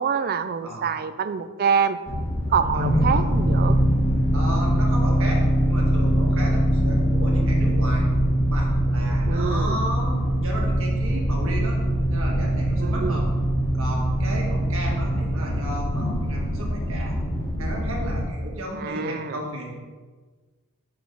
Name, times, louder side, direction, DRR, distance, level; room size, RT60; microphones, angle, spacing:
voice 1, 0.0-2.0 2.5-3.8 9.3-9.8 12.8-13.2 18.8-19.4, right 6 dB, 45° right, 12 dB, 0.4 m, -25 dB
sound 1, 2.1-18.2, equal, 35° left, 1.6 m, -22 dB
voice 2, 2.7-3.2 4.3-8.1 8.5-11.8 12.1-13.3 13.7-17.1 17.6-19.7, equal, 60° right, -1 dB, 1.7 m, -33 dB
6.4 x 4.7 x 5.3 m, 1.4 s
head